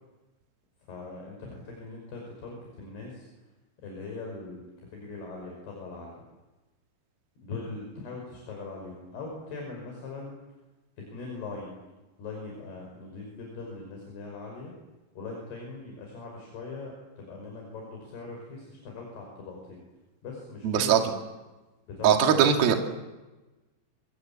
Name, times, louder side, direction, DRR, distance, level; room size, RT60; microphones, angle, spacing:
voice 1, 0.9-3.3 3.8-6.1 7.4-10.4 11.1-11.8 12.2-14.7 15.2-19.8 20.2-21.1 21.9-22.8, left 3 dB, 55° left, 0 dB, 7.4 m, -41 dB
voice 2, 20.6-21.1 22.0-22.8, right 8 dB, 55° right, 3 dB, 3.9 m, -21 dB
25.0 x 24.5 x 8.5 m, 1.1 s
omnidirectional pair, 5.7 m